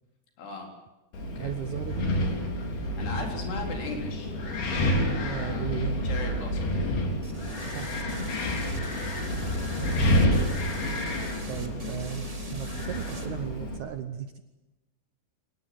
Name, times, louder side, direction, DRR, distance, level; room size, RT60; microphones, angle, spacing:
voice 1, 0.4-0.7 1.2-1.5 2.6-4.4 5.1-6.7 8.6-8.8, left 4 dB, 85° left, 2 dB, 6.2 m, -38 dB
Wind, 1.1-13.8, equal, 70° left, 5.5 m, -29 dB
voice 2, 1.4-2.1 5.2-6.0 7.7-8.2 11.5-12.3 12.5-14.4, right 9 dB, 70° right, 8 dB, 1.9 m, -36 dB
sound 1, 7.2-13.3, right 2 dB, 15° right, 1.5 m, -46 dB
26.0 x 19.0 x 8.1 m, 1.0 s
omnidirectional pair, 4.7 m